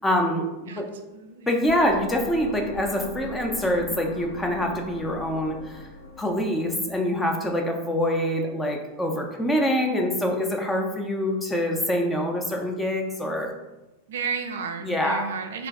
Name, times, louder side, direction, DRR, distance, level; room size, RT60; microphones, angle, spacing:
voice 1, 0.0-0.9 1.5-5.9 6.2-13.5 14.8-15.2, equal, 10° left, 2 dB, 0.5 m, -25 dB
voice 2, 1.1-1.6 14.1-15.7, right 6 dB, 60° right, 6 dB, 0.4 m, -32 dB
sound 1, 1.7-7.7, left 2 dB, 65° left, 0.4 m, -40 dB
3.2 x 2.3 x 3.4 m, 1.0 s
figure-of-eight pair, 90°, 0 cm